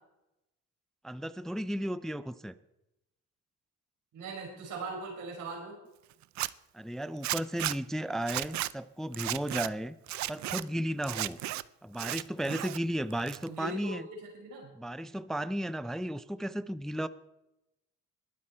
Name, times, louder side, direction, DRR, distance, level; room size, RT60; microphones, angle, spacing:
voice 1, 1.0-2.6 6.7-9.9 10.3-11.4 11.8-14.1 14.8-17.1, equal, ahead, 14 dB, 0.4 m, -34 dB
voice 2, 4.1-5.8 13.5-14.7, right 3 dB, 90° right, 0 dB, 5.2 m, -40 dB
Zipper (clothing), 6.2-6.5 7.2-7.8 8.2-8.7 9.1-9.7 10.1-10.6 11.0-11.6 11.9-12.8 13.1-13.7, right 15 dB, 65° right, 0.5 m, -34 dB
21.0 x 7.6 x 4.4 m, 0.91 s
cardioid pair, 90°, 30 cm